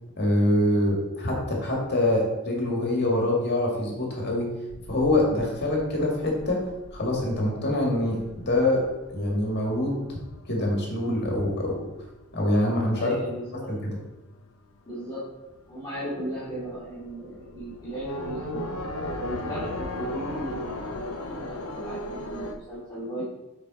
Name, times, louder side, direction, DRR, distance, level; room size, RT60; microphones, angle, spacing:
voice 1, 0.2-4.5 4.9-6.6 6.9-8.8 9.1-10.0 10.5-11.9 12.3-13.1 13.7-14.0, left 1 dB, 50° left, -1 dB, 1.8 m, -25 dB
sound 1, 4.7-13.6 13.9-14.7 15.0-15.1 15.4-22.5, left 1 dB, 90° left, 0.8 m, -37 dB
voice 2, 13.0-13.7 14.8-15.2 15.7-18.7 19.2-20.9 21.3-23.3, right 1 dB, 20° left, -12 dB, 2.3 m, -36 dB
7.4 x 4.9 x 4.1 m, 1.1 s
head